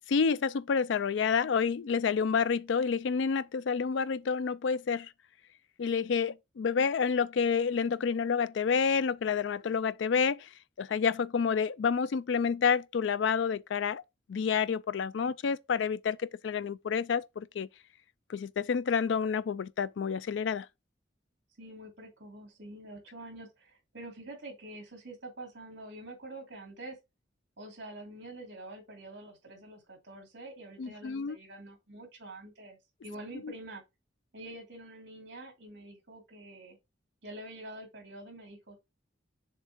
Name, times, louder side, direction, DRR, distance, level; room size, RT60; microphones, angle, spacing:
voice 1, 0.1-5.1 5.8-10.5 10.8-14.0 14.3-17.7 18.3-20.7 30.8-31.4 33.4-33.5, left 6 dB, 70° left, 0.4 m, -29 dB
voice 2, 21.6-27.0 27.6-32.8 33.0-33.8 34.3-36.8 37.2-38.8, right 1 dB, 60° right, 2.7 m, -46 dB
6.7 x 3.6 x 4.5 m
head